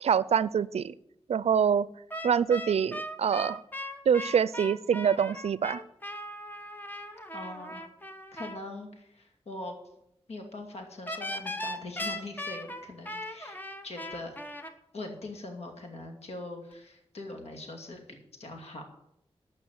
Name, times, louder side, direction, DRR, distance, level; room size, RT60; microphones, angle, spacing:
voice 1, 0.0-0.9 1.3-1.9 2.2-3.6 4.1-5.8, right 7 dB, 80° right, 19 dB, 0.4 m, -25 dB
sound 1, 2.1-8.6 11.1-14.7, left 1 dB, 15° left, 1.2 m, -38 dB
voice 2, 7.3-7.8 8.3-9.7 10.3-14.4 14.9-18.8, left 2 dB, 80° left, 3 dB, 2.5 m, -42 dB
12.5 x 6.2 x 7.9 m, 0.78 s
wide cardioid pair, 75°, 11 cm